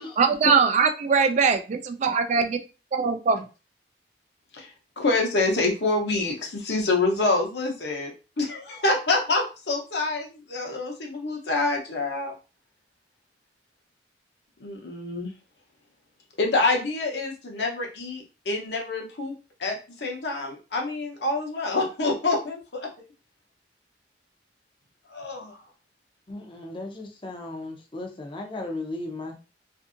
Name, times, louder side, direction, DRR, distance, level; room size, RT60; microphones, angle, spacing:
voice 1, 0.2-2.6 2.9-3.5, right 5 dB, 40° right, 7 dB, 0.3 m, -21 dB
voice 2, 4.5-8.1 8.4-12.3 14.6-15.3 16.4-19.3 19.6-22.9 25.1-25.6, left 2 dB, 70° left, 0 dB, 0.8 m, -26 dB
voice 3, 26.3-29.4, left 2 dB, 30° left, 3 dB, 0.5 m, -35 dB
2.6 x 2.6 x 2.5 m, 0.31 s
head